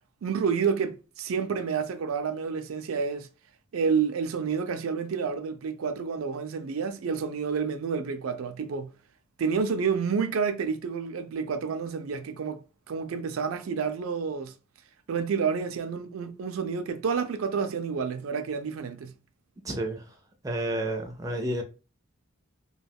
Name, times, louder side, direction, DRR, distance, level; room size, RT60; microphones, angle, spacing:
voice 1, 0.2-3.3 3.7-8.9 9.4-12.6 12.9-14.5 15.1-19.1, right 6 dB, 85° right, 0.4 m, -29 dB
voice 2, 19.6-20.0 20.4-21.6, right 1 dB, 15° right, 0.4 m, -30 dB
2.2 x 2.2 x 3.4 m
head